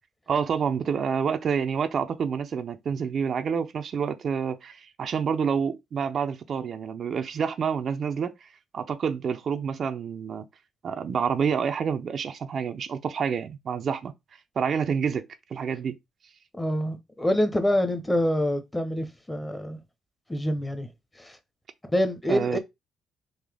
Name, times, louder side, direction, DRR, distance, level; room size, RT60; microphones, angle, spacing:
voice 1, 0.3-10.5 10.8-14.1 14.6-16.0 22.3-22.6, right 6 dB, 55° right, 0.5 m, -28 dB
voice 2, 16.6-19.8 20.3-20.9 21.2-21.3 21.9-22.6, equal, 10° left, 0.9 m, -26 dB
3.9 x 2.8 x 3.4 m
cardioid pair, 90°, 0 cm